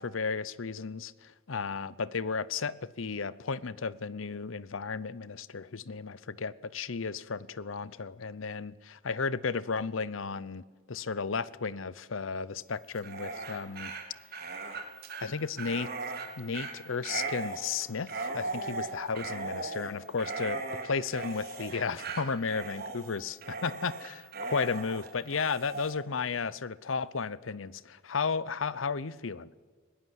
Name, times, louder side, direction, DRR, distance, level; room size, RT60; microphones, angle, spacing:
voice 1, 0.0-10.6 10.9-13.9 15.2-15.9 16.4-29.5, left 5 dB, 90° left, 0.8 m, -34 dB
Dog, 12.9-25.9, right 3 dB, 50° right, 3.5 m, -38 dB
21.0 x 18.5 x 8.1 m
head